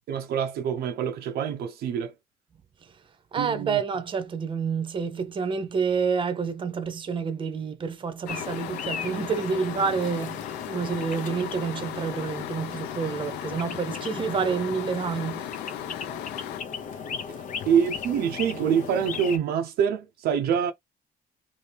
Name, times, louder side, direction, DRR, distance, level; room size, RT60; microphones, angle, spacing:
voice 1, 0.1-2.1 3.4-3.8 17.7-20.7, right 8 dB, 70° right, 0.5 m, -25 dB
voice 2, 3.3-15.5 17.3-17.4, right 6 dB, 30° right, 0.7 m, -29 dB
sound 1, 8.3-16.6, left 14 dB, 85° left, 0.4 m, -38 dB
sound 2, 8.3-19.4, left 6 dB, 50° left, 0.7 m, -37 dB
2.8 x 2.6 x 3.3 m
cardioid pair, 110°, 17 cm